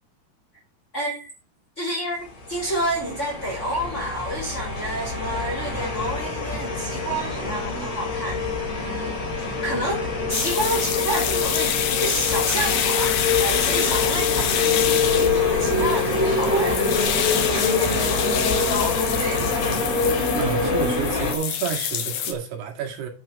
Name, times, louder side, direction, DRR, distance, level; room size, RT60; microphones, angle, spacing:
voice 1, 0.9-1.3 1.8-19.6, right 1 dB, 20° left, 3.1 m, -30 dB
sound 1, 2.4-21.3, left 4 dB, 45° left, 3.6 m, -25 dB
sound 2, 10.3-22.3, left 9 dB, 65° left, 2.2 m, -27 dB
voice 2, 20.3-23.1, right 7 dB, 75° right, 4.2 m, -29 dB
8.8 x 6.2 x 5.9 m
omnidirectional pair, 4.8 m